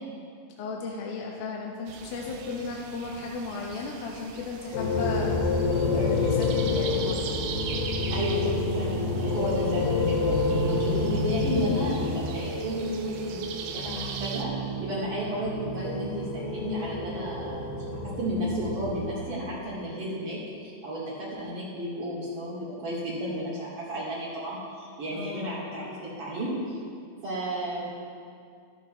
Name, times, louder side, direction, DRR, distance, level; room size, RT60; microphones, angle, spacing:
voice 1, 0.6-5.4 5.9-7.2 25.1-25.5, left 4 dB, 80° left, -2 dB, 2.8 m, -35 dB
sound 1, 1.9-14.4, right 6 dB, 80° right, 2.5 m, -41 dB
sound 2, 4.7-19.3, left 3 dB, 60° left, 2.3 m, -28 dB
voice 2, 8.1-17.7 18.2-26.8 27.2-27.9, equal, 60° right, -12 dB, 4.0 m, -33 dB
13.5 x 13.0 x 3.2 m, 2.3 s
omnidirectional pair, 4.3 m